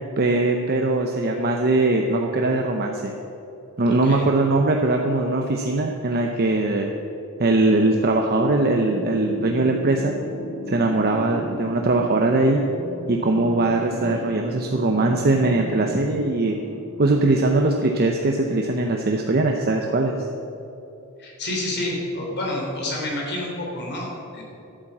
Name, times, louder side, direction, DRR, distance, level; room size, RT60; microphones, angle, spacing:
voice 1, 0.2-3.1 3.8-6.9 7.4-10.1 10.7-12.6 13.1-16.6 17.0-20.2, right 2 dB, 45° right, 2 dB, 0.8 m, -21 dB
sound 1, 8.7-17.7, left 1 dB, 80° left, 2.7 m, -36 dB
voice 2, 21.2-24.4, left 1 dB, 50° left, -2 dB, 3.3 m, -29 dB
11.5 x 8.9 x 7.3 m, 2.9 s
head